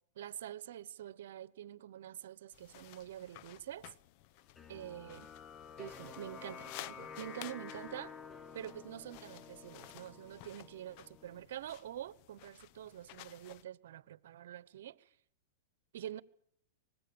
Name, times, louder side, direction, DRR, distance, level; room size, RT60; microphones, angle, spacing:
voice 1, 0.1-3.9 4.7-5.3 5.8-8.1 8.5-15.1 15.9-16.2, right 11 dB, 70° right, 1.0 m, -46 dB
sound 1, 2.5-13.6, left 15 dB, 50° left, 0.9 m, -54 dB
sound 2, 4.5-11.4, left 6 dB, 20° left, 0.9 m, -51 dB
24.0 x 21.0 x 7.0 m
hypercardioid pair, 130°, 0 cm